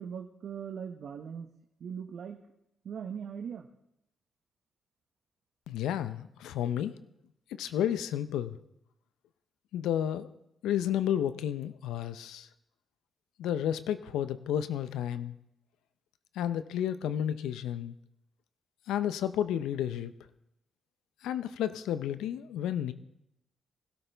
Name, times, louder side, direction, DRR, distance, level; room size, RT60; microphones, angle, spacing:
voice 1, 0.0-1.5 1.8-2.4 2.8-3.7, right 7 dB, 70° right, 5 dB, 0.9 m, -40 dB
voice 2, 5.7-6.9 7.6-8.6 9.7-10.3 10.6-12.5 13.4-15.4 16.3-17.9 18.9-20.1 21.2-22.9, left 10 dB, 90° left, 13 dB, 0.6 m, -31 dB
20.0 x 12.5 x 3.4 m, 0.83 s
cardioid pair, 65°, 0 cm